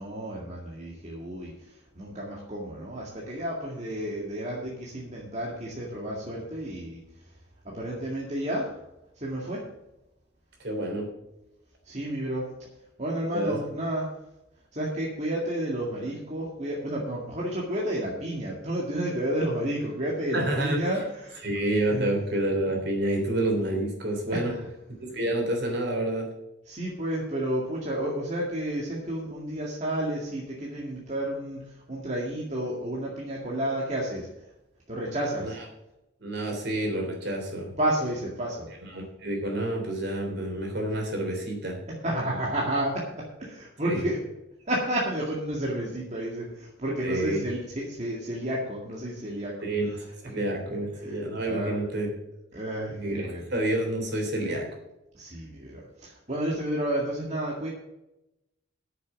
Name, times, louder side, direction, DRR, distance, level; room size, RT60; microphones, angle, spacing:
voice 1, 0.0-7.0 7.6-8.8 9.2-9.6 11.8-12.5 13.0-14.1 14.7-21.4 21.9-22.1 24.3-24.6 26.7-34.3 34.9-35.6 37.8-38.7 42.0-44.2 44.7-49.7 51.0-51.2 51.4-51.9 52.5-53.4 55.1-57.7, right 1 dB, 35° right, -4 dB, 2.0 m, -31 dB
voice 2, 10.6-11.1 13.3-13.6 20.3-20.9 21.4-24.5 25.1-26.3 35.4-35.5 36.2-37.7 38.9-41.8 43.8-44.0 47.0-47.4 49.6-52.1 52.9-54.7, right 1 dB, 55° right, 2 dB, 3.4 m, -28 dB
9.4 x 6.9 x 7.4 m, 0.90 s
head